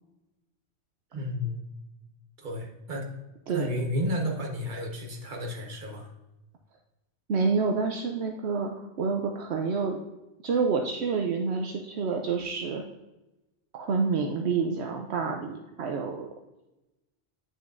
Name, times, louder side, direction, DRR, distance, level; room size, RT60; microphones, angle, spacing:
voice 1, 1.1-1.6 2.4-3.1 3.5-6.1, left 1 dB, 45° right, 1 dB, 1.4 m, -32 dB
voice 2, 7.3-10.0 10.4-12.8 13.7-16.3, right 5 dB, 75° right, 3 dB, 0.9 m, -28 dB
8.9 x 6.4 x 2.6 m, 0.99 s
omnidirectional pair, 1.1 m